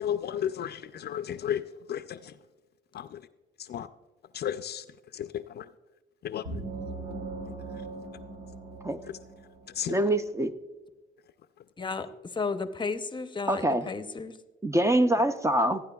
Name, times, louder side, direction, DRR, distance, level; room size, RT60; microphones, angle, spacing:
voice 1, 0.0-2.4 2.9-3.2 3.6-3.9 4.3-4.9 5.1-5.7 6.2-6.6 9.7-10.0, left 9 dB, 55° left, 12 dB, 0.4 m, -33 dB
sound 1, 6.5-10.0, right 3 dB, 85° right, 3.2 m, -40 dB
voice 2, 9.9-10.5 13.5-13.9 14.6-15.8, right 1 dB, 15° right, 10 dB, 0.5 m, -24 dB
voice 3, 11.8-14.4, left 4 dB, 25° left, 10 dB, 0.7 m, -33 dB
15.5 x 9.7 x 2.3 m, 1.1 s
cardioid pair, 90°, 20 cm